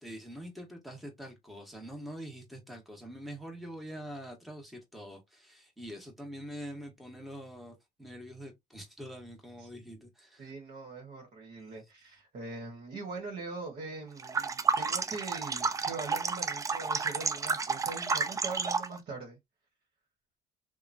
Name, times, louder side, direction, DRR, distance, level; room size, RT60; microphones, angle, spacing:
voice 1, 0.0-10.5, equal, ahead, 1.2 m, -45 dB
voice 2, 10.4-19.4, right 3 dB, 55° right, 1.3 m, -42 dB
sound 1, 14.2-19.0, right 4 dB, 20° right, 0.3 m, -31 dB
2.9 x 2.2 x 2.5 m
cardioid pair, 110°, 17 cm